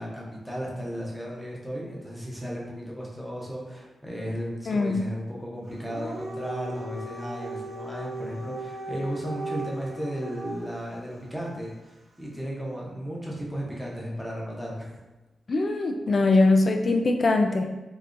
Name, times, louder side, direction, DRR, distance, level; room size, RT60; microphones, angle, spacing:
voice 1, 0.0-15.0, equal, ahead, -4 dB, 0.7 m, -35 dB
voice 2, 4.7-5.0 15.5-17.7, left 2 dB, 40° left, 4 dB, 0.3 m, -22 dB
Dog, 5.7-10.9, right 1 dB, 45° right, 0.6 m, -37 dB
3.6 x 2.7 x 2.5 m, 1.1 s
wide cardioid pair, 145°, 0 cm